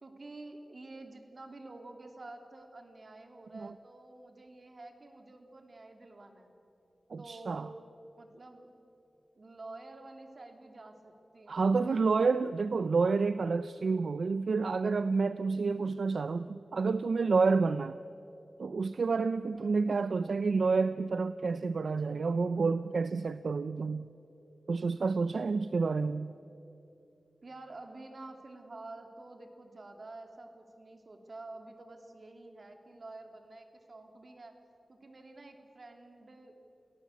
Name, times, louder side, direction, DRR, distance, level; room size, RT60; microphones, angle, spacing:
voice 1, 0.0-6.5 7.2-7.8 8.2-8.7 9.3-12.1 19.5-19.9 27.4-34.6 34.9-36.6, right 2 dB, 50° right, 5 dB, 2.8 m, -49 dB
voice 2, 7.1-7.7 11.5-18.0 18.6-24.1 24.7-26.3, right 4 dB, 75° right, 13 dB, 0.5 m, -29 dB
28.5 x 17.5 x 8.4 m, 2.9 s
wide cardioid pair, 75°, 0 cm